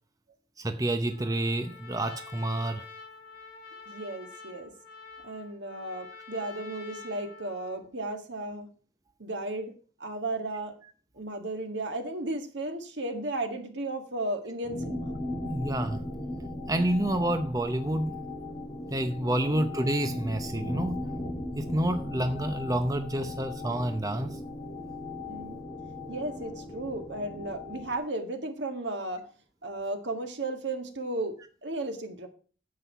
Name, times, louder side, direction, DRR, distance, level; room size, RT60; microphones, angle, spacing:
voice 1, 0.6-2.8 15.4-16.0 16.7-18.2 18.9-21.0 21.6-24.4, right 1 dB, 20° right, 0.7 m, -29 dB
Trumpet, 1.1-7.9, left 4 dB, 45° left, 3.9 m, -47 dB
voice 2, 3.9-4.7 5.2-8.7 9.2-10.8 11.2-15.1 19.2-19.6 25.3-25.6 26.1-29.2 29.6-32.3, right 2 dB, 80° right, 1.9 m, -34 dB
sound 1, 14.6-28.0, left 1 dB, 20° left, 5.5 m, -37 dB
9.8 x 7.6 x 4.6 m
head